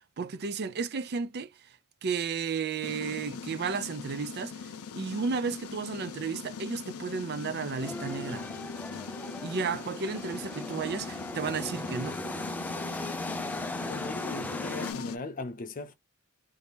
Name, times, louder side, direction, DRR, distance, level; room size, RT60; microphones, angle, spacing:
voice 1, 0.2-1.5 2.0-4.6 4.9-8.5 9.4-12.2, right 5 dB, 50° right, 0.5 m, -33 dB
sound 1, 2.8-15.2, left 6 dB, 85° left, 0.4 m, -41 dB
sound 2, 7.8-14.9, left 1 dB, 10° left, 0.3 m, -37 dB
voice 2, 13.9-15.9, left 3 dB, 40° left, 0.6 m, -39 dB
2.8 x 2.6 x 3.5 m
head